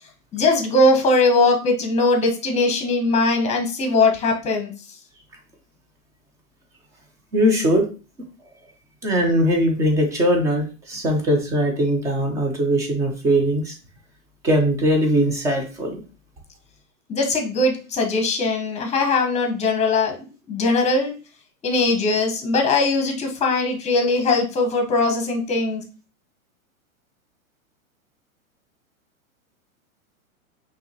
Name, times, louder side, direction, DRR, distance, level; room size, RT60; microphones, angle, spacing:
voice 1, 0.3-5.0 17.1-21.1 21.6-25.8, left 2 dB, 15° left, 3 dB, 0.9 m, -20 dB
voice 2, 7.3-7.9 9.0-13.7 14.4-16.0, equal, 10° right, 3 dB, 0.4 m, -20 dB
5.7 x 2.8 x 2.9 m, 0.35 s
hypercardioid pair, 125°, 42 cm